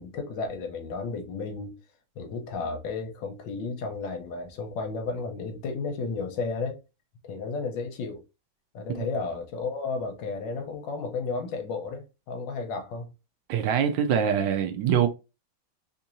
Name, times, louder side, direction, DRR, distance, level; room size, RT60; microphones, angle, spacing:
voice 1, 0.0-1.7 2.2-6.8 7.2-8.2 8.7-13.1, left 4 dB, 70° left, 1.4 m, -33 dB
voice 2, 13.5-15.1, right 8 dB, 75° right, 1.2 m, -24 dB
3.6 x 2.8 x 2.5 m
omnidirectional pair, 2.2 m